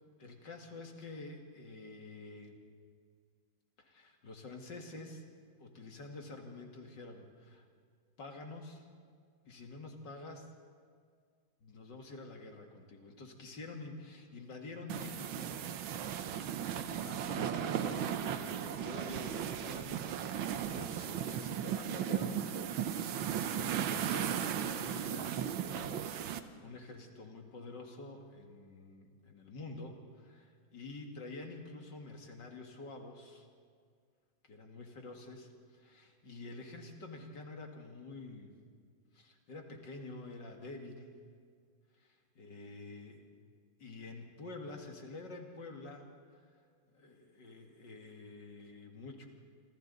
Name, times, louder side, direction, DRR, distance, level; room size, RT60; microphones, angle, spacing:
voice 1, 0.2-2.6 3.8-5.2 5.6-7.7 8.2-8.9 9.4-10.5 11.6-15.6 16.5-22.7 23.1-33.5 34.5-38.5 39.1-41.2 42.0-43.2 43.8-46.6 46.9-49.3, left 2 dB, 60° left, 3 dB, 2.6 m, -48 dB
sound 1, 14.9-26.4, right 9 dB, 90° right, 1.7 m, -36 dB
27.0 x 26.5 x 4.1 m, 2.1 s
omnidirectional pair, 2.1 m